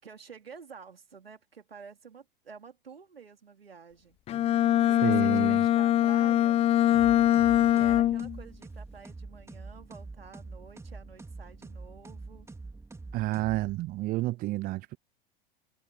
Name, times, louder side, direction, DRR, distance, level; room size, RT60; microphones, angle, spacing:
voice 1, 0.0-4.6 4.9-6.6 7.7-12.5, right 6 dB, 80° right, 3.9 m, -50 dB
Bowed string instrument, 4.3-8.4, left 12 dB, 20° left, 0.5 m, -23 dB
voice 2, 5.0-5.6 13.1-15.0, right 18 dB, 30° right, 0.6 m, -30 dB
sound 1, 6.9-14.1, right 3 dB, 10° right, 3.3 m, -45 dB
figure-of-eight pair, 90°, 29 cm